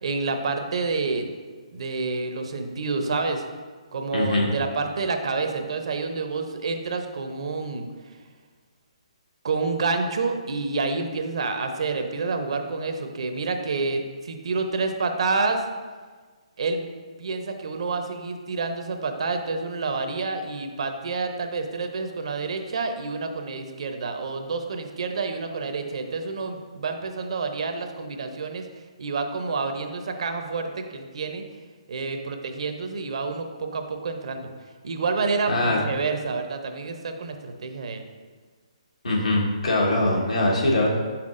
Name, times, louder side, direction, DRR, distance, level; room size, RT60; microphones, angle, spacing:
voice 1, 0.0-1.3 1.7-3.4 3.9-7.9 9.4-15.6 16.6-16.9 17.2-28.7 29.0-31.4 31.9-34.5 34.8-38.0, right 4 dB, 65° right, 6 dB, 0.7 m, -28 dB
voice 2, 4.1-4.5 35.5-35.8 39.0-40.9, left 1 dB, 80° left, -2 dB, 1.5 m, -22 dB
7.1 x 5.8 x 2.5 m, 1.4 s
hypercardioid pair, 140°, 3 cm